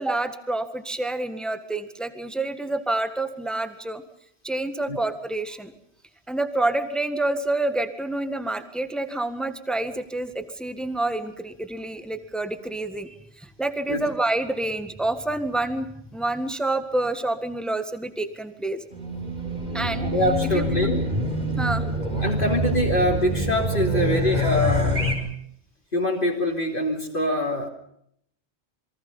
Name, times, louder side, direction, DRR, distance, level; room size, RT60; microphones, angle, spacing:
voice 1, 0.0-4.0 4.4-5.7 6.3-13.1 13.4-15.9 16.1-18.8 19.7-20.1 20.5-21.0 21.6-21.8, right 2 dB, ahead, 9 dB, 1.6 m, -28 dB
Race car auto racing / Alarm, 18.9-25.2, equal, 35° right, 5.2 m, -25 dB
voice 2, 20.1-21.0 22.2-25.0 25.9-27.7, left 1 dB, 45° left, -1 dB, 3.4 m, -24 dB
28.0 x 23.5 x 5.6 m, 0.70 s
omnidirectional pair, 1.2 m